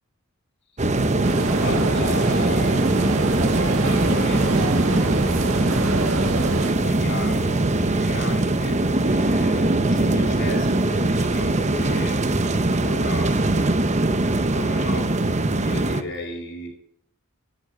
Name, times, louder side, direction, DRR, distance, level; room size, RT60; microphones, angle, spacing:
sound 1, 0.8-16.0, right 2 dB, 30° right, 0.9 m, -21 dB
sound 2, 1.2-6.7, right 3 dB, 70° right, 2.0 m, -28 dB
voice 1, 1.5-3.1 3.5-5.6 6.7-13.5 14.2-15.2 15.6-16.7, left 2 dB, 55° left, -4 dB, 4.6 m, -35 dB
16.5 x 10.5 x 7.8 m, 0.69 s
head